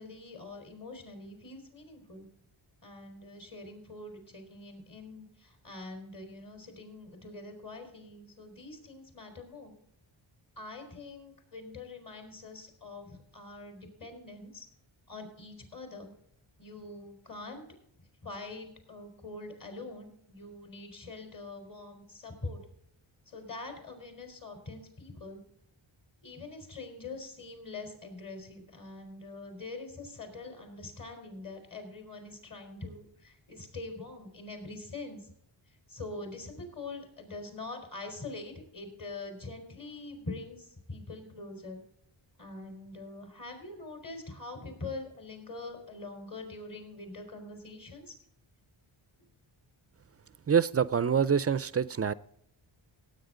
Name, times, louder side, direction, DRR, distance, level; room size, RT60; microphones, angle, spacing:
voice 1, 0.0-2.3 2.8-9.7 10.6-14.7 15.1-16.1 16.6-17.7 18.2-22.6 23.3-25.4 26.2-35.2 35.9-41.8 42.4-48.2, left 3 dB, 40° left, 4 dB, 4.1 m, -44 dB
voice 2, 50.5-52.1, right 7 dB, 30° right, 17 dB, 0.4 m, -26 dB
17.5 x 8.9 x 3.7 m, 0.70 s
wide cardioid pair, 115°, 49 cm